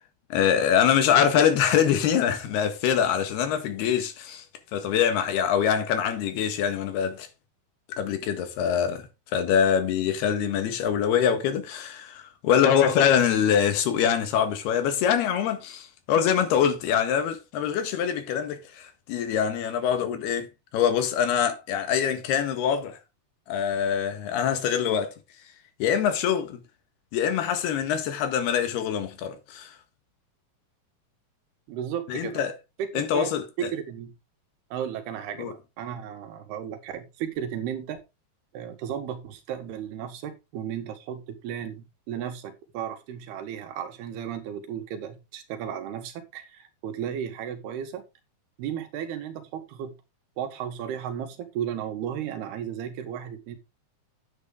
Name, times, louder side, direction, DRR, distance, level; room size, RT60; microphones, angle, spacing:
voice 1, 0.3-4.5 4.7-7.3 8.0-23.0 23.5-25.2 25.8-26.6 27.1-29.8 32.1-32.5 33.0-33.4 35.4-35.5, left 8 dB, 90° left, 3.7 m, -24 dB
voice 2, 31.7-32.4 32.8-34.1 34.7-38.0 38.5-48.0 48.6-50.0 50.4-53.6, right 9 dB, 90° right, 3.5 m, -34 dB
9.6 x 8.4 x 3.7 m
omnidirectional pair, 4.4 m